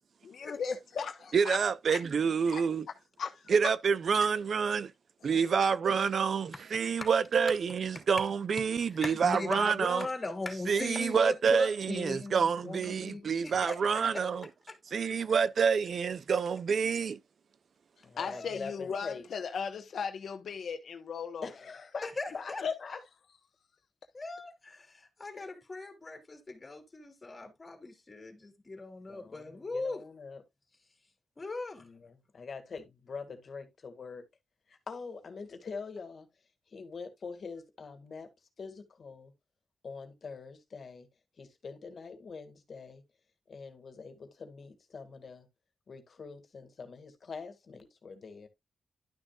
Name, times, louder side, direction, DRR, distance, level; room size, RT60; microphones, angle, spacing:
voice 1, 0.2-1.6 1.9-2.0 2.5-2.6 3.2-3.5 5.2-5.5 18.2-21.5 22.6-22.7, left 6 dB, 75° left, 1.0 m, -37 dB
voice 2, 1.3-2.9 3.5-4.9 5.2-10.1 10.7-14.4 14.9-17.2, right 6 dB, 60° right, 0.5 m, -28 dB
voice 3, 6.7-7.1 7.9-8.0 8.9-14.2 14.7-14.8 18.2-18.7 22.0-22.6 24.1-30.0 31.4-31.9, left 2 dB, 25° left, 2.7 m, -39 dB
voice 4, 18.0-19.2 21.4-22.1 22.3-22.5 22.8-23.0 25.3-25.6 29.1-30.4 31.8-34.2 34.7-36.3 36.7-38.3 38.6-39.3 39.8-41.1 41.4-43.0 43.5-45.5 45.9-48.5, left 5 dB, 55° left, 2.0 m, -44 dB
11.5 x 6.3 x 2.4 m
wide cardioid pair, 135°, 0 cm